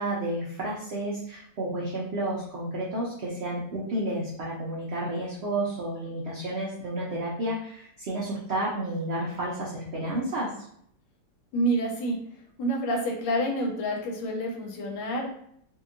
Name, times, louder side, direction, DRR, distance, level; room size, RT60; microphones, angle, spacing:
voice 1, 0.0-10.5, right 1 dB, 85° right, -5 dB, 0.5 m, -31 dB
voice 2, 11.5-12.2 12.6-15.3, right 1 dB, 90° left, 0 dB, 1.4 m, -28 dB
2.8 x 2.7 x 2.5 m, 0.68 s
omnidirectional pair, 1.9 m